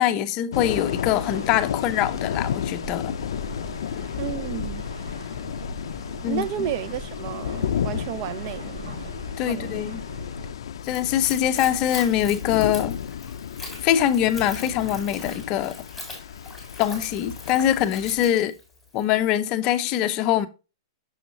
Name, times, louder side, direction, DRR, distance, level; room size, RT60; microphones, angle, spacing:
voice 1, 0.0-3.2 6.2-6.4 9.4-10.0 10.8-13.0 13.8-15.8 16.8-18.6 18.9-20.5, left 11 dB, 25° left, 0.6 m, -23 dB
sound 1, 0.5-18.3, left 9 dB, 75° left, 0.4 m, -33 dB
sound 2, 0.6-10.5, right 2 dB, 80° right, 3.5 m, -40 dB
voice 2, 4.2-4.8 6.3-9.0 9.5-10.0, right 10 dB, 35° right, 0.4 m, -32 dB
Splash splatter / Trickle dribble, 10.8-19.1, left 2 dB, 5° right, 2.6 m, -41 dB
6.3 x 6.0 x 2.6 m
hypercardioid pair, 170°, 3 cm